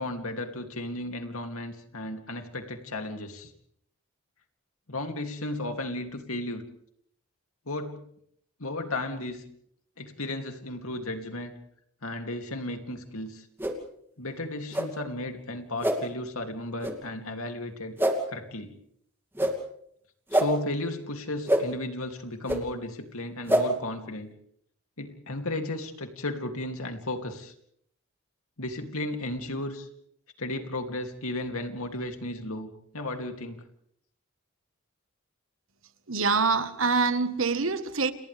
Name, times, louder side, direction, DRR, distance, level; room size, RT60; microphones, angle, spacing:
voice 1, 0.0-3.5 4.9-6.6 7.7-8.0 8.6-9.4 10.0-11.5 12.0-13.5 14.2-18.0 18.3-18.7 20.3-24.3 25.0-27.5 28.6-29.9 30.4-33.6, left 2 dB, 85° left, 2.8 m, -34 dB
sound 1, 13.6-13.7 14.7-14.9 15.8-16.0 16.8-16.9 18.0-18.1 19.3-19.5 20.3-20.5 21.5-21.6 22.5-22.6 23.5-23.6, right 1 dB, 10° right, 2.6 m, -24 dB
voice 2, 36.1-38.1, right 4 dB, 65° right, 1.4 m, -25 dB
30.0 x 29.0 x 3.5 m
head